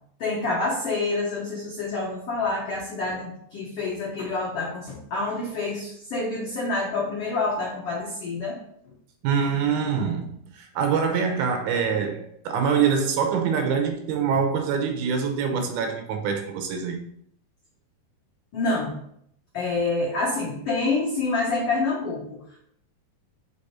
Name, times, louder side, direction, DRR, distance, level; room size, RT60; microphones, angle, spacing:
voice 1, 0.2-8.6 18.5-18.9 19.5-22.6, left 3 dB, 85° left, -3 dB, 1.3 m, -27 dB
voice 2, 9.2-17.0, right 6 dB, 80° right, 4 dB, 2.7 m, -25 dB
5.4 x 5.1 x 4.2 m, 0.69 s
omnidirectional pair, 4.5 m